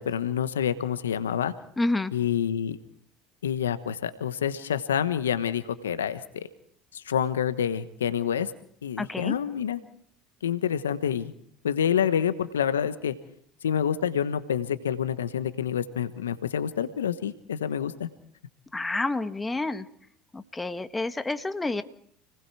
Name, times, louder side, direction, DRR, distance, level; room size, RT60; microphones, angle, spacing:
voice 1, 0.0-1.5 2.1-2.8 3.4-6.5 6.9-8.5 8.8-9.8 10.4-11.3 11.6-13.1 13.6-18.1, left 8 dB, 90° left, 13 dB, 1.1 m, -27 dB
voice 2, 1.8-2.1 9.0-9.3 18.7-19.9 20.3-21.8, left 2 dB, 15° left, 10 dB, 1.5 m, -29 dB
29.5 x 19.5 x 4.7 m, 0.63 s
hypercardioid pair, 70°, 0 cm